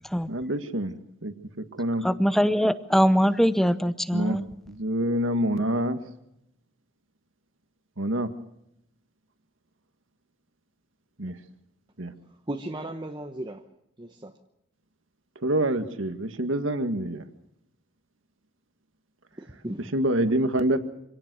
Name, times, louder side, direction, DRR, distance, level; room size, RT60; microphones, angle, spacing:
voice 1, 0.3-0.9 1.2-1.3 1.8-2.0 4.1-4.4 4.7-6.0 8.0-8.3 11.2-11.4 12.0-12.1 15.4-17.2 19.9-20.8, right 1 dB, 70° right, 1.9 m, -26 dB
voice 2, 2.0-4.4, equal, ahead, 0.8 m, -22 dB
voice 3, 12.5-13.6 14.0-14.3 19.4-19.9, right 1 dB, 20° right, 1.0 m, -36 dB
26.0 x 17.5 x 6.3 m
head